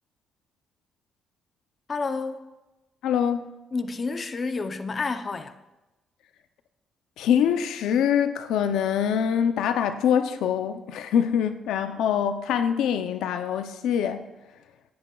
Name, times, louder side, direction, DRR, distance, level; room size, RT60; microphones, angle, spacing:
voice 1, 1.9-2.4 3.7-5.6, left 4 dB, 35° left, 0.6 m, -29 dB
voice 2, 3.0-3.5 7.2-14.2, left 8 dB, 85° left, 0.5 m, -24 dB
15.0 x 10.0 x 2.3 m
cardioid pair, 90°, 0 cm